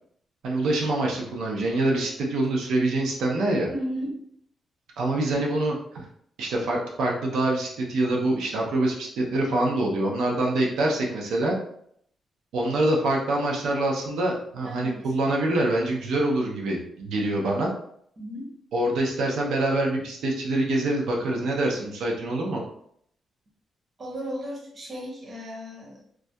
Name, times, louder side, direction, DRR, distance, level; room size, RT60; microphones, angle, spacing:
voice 1, 0.4-3.7 5.0-6.1 6.4-11.6 12.5-17.7 18.7-22.6, right 2 dB, 85° right, -1 dB, 0.5 m, -25 dB
voice 2, 3.7-4.1 14.6-15.1 18.2-18.5 24.0-26.0, equal, 30° right, -3 dB, 0.7 m, -35 dB
2.2 x 2.1 x 2.6 m, 0.68 s
wide cardioid pair, 165°, 0 cm